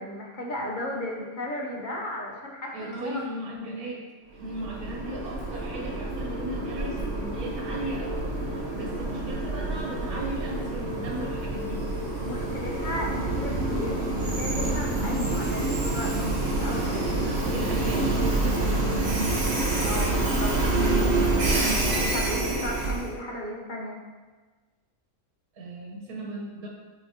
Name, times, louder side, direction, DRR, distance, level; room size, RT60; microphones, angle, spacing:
voice 1, 0.0-3.2 12.2-17.1 19.8-20.6 22.1-24.0, left 1 dB, 40° left, -1 dB, 0.8 m, -35 dB
voice 2, 2.7-4.0 4.3-11.8 17.4-19.4 25.5-26.7, right 1 dB, 80° right, -2 dB, 1.6 m, -37 dB
Train, 4.4-23.1, right 2 dB, 50° right, 1.1 m, -27 dB
8.5 x 4.1 x 2.8 m, 1.4 s
omnidirectional pair, 1.5 m